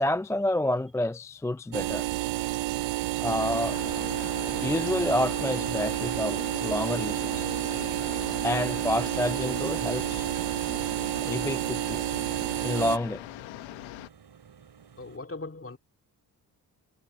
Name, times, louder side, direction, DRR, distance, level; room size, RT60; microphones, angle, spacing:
voice 1, 0.0-2.1 3.2-3.8 4.6-7.5 8.4-10.3 11.2-12.0 12.6-13.2, left 1 dB, 5° left, 0.3 m, -29 dB
sound 1, 1.7-13.0, right 17 dB, 80° right, 0.7 m, -30 dB
sound 2, 3.2-14.1, left 18 dB, 85° left, 0.9 m, -41 dB
sound 3, 8.3-15.2, right 7 dB, 60° right, 3.0 m, -54 dB
voice 2, 15.0-15.8, left 3 dB, 30° left, 3.3 m, -41 dB
hypercardioid pair, 40°, 44 cm